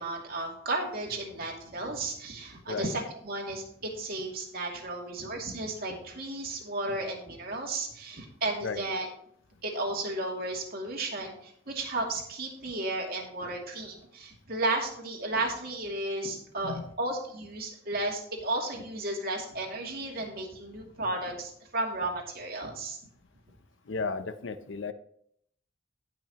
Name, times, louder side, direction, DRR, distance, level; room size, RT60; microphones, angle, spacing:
voice 1, 0.0-9.1 9.6-23.0, right 2 dB, 55° right, 0 dB, 2.5 m, -34 dB
voice 2, 23.9-24.9, left 4 dB, 85° left, 11 dB, 0.7 m, -34 dB
17.5 x 5.8 x 3.0 m, 0.68 s
head